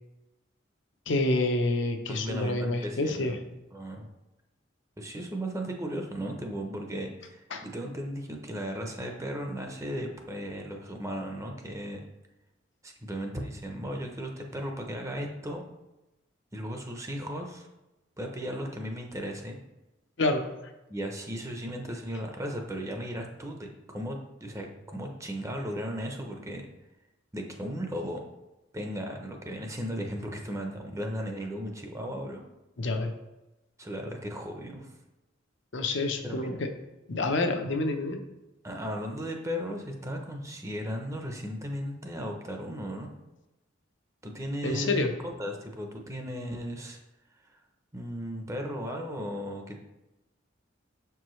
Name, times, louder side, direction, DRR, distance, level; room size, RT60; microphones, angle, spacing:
voice 1, 1.1-3.4 7.5-7.6 20.2-20.7 32.8-33.1 35.7-36.7 37.1-38.2 44.6-45.1, left 2 dB, 65° left, 5 dB, 0.7 m, -28 dB
voice 2, 2.1-3.4 3.7-4.1 5.0-12.0 12.8-15.6 16.5-17.7 18.2-19.6 20.9-26.7 27.3-28.2 28.7-32.4 33.8-34.9 36.2-36.6 38.6-43.1 44.2-47.0 47.4-47.6 47.9-49.8, equal, 15° right, 3 dB, 0.6 m, -36 dB
6.9 x 4.6 x 3.1 m, 0.98 s
head